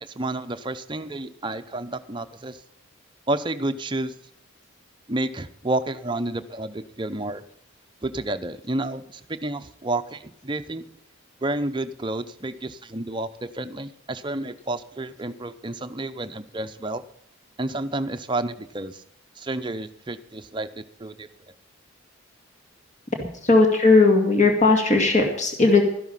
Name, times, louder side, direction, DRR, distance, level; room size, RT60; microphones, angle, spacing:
voice 1, 0.0-2.6 3.3-4.1 5.1-7.4 8.0-10.9 11.4-17.0 17.6-19.0 19.4-21.3 23.2-23.3, right 2 dB, 25° right, 9 dB, 0.7 m, -30 dB
voice 2, 23.4-25.8, left 3 dB, 35° left, 3 dB, 2.1 m, -17 dB
13.0 x 11.0 x 5.7 m, 0.74 s
head